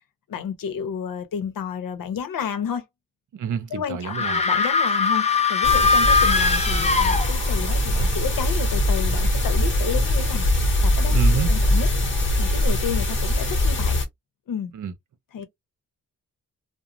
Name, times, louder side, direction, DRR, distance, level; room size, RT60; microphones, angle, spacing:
voice 1, 0.3-2.8 3.7-11.9 12.4-14.0 14.5-14.7 15.3-15.5, left 7 dB, 85° left, 0.8 m, -31 dB
voice 2, 3.3-4.4 11.1-11.5 14.7-14.9, right 7 dB, 65° right, 0.7 m, -28 dB
sound 1, 4.1-7.8, left 4 dB, 20° left, 0.5 m, -21 dB
sound 2, 5.6-14.0, left 1 dB, 35° left, 0.9 m, -22 dB
2.5 x 2.1 x 2.9 m
wide cardioid pair, 125°, 33 cm